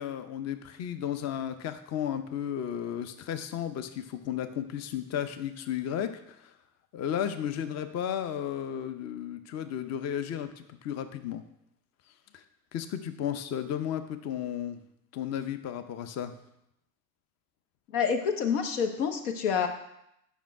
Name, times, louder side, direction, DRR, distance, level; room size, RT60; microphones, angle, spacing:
voice 1, 0.0-6.5 6.9-11.4 12.3-12.4 12.7-14.8 15.1-16.3, left 9 dB, 35° left, 10 dB, 0.7 m, -34 dB
voice 2, 17.9-19.7, left 7 dB, 70° left, 6 dB, 1.2 m, -27 dB
7.3 x 5.5 x 4.6 m, 0.79 s
hypercardioid pair, 85°, 49 cm